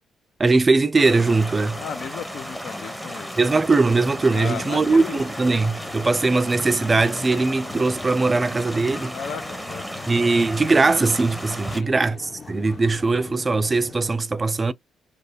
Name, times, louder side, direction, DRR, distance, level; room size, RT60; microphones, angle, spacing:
voice 1, 0.4-1.8 3.4-9.2 10.1-14.7, right 3 dB, 25° right, 0.4 m, -20 dB
sound 1, 1.0-11.8, equal, 5° left, 0.7 m, -34 dB
voice 2, 1.8-3.4 4.3-5.2 9.1-10.0 11.7-12.1, left 7 dB, 70° left, 0.5 m, -35 dB
sound 2, 4.1-14.1, left 5 dB, 35° left, 0.7 m, -42 dB
3.2 x 2.2 x 4.0 m
cardioid pair, 90°, 0 cm